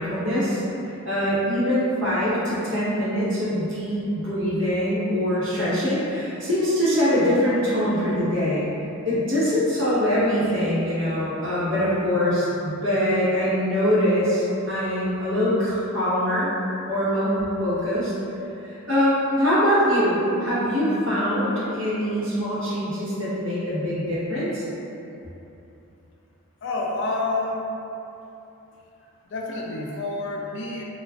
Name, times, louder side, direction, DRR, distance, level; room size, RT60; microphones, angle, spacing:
voice 1, 0.0-8.7 9.0-16.5 16.9-18.1 18.7-24.6, equal, 55° right, -10 dB, 0.9 m, -23 dB
voice 2, 26.6-27.6 29.2-30.8, left 2 dB, 55° left, -2 dB, 0.3 m, -28 dB
2.3 x 2.3 x 3.3 m, 2.9 s
head